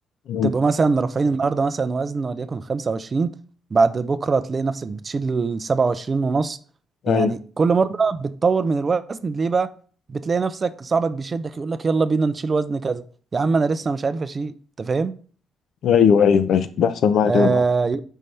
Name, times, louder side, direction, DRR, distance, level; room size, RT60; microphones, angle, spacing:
voice 1, 0.4-3.3 3.7-6.6 7.1-9.7 10.1-13.0 13.3-15.1 17.2-18.0, right 4 dB, 30° right, 0.4 m, -22 dB
voice 2, 15.8-17.6, left 7 dB, 70° left, 0.6 m, -18 dB
7.6 x 5.5 x 3.3 m
cardioid pair, 155°, 0 cm